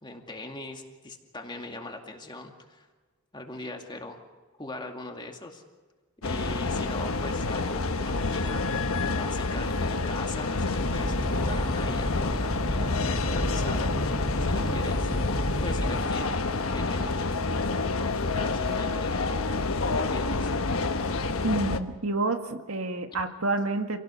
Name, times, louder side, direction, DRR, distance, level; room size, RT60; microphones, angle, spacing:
voice 1, 0.0-2.9 3.3-4.2 4.6-5.6 6.2-8.7 9.2-15.1 15.6-16.3 16.7-17.5 17.9-20.5, left 2 dB, 20° left, 3 dB, 2.3 m, -40 dB
sound 1, 6.2-21.8, left 3 dB, 80° left, 1.2 m, -28 dB
sound 2, 10.8-16.0, equal, 55° left, 5.9 m, -31 dB
voice 2, 21.4-24.0, right 2 dB, 90° right, 6 dB, 1.9 m, -28 dB
27.5 x 17.5 x 7.1 m, 1.4 s
head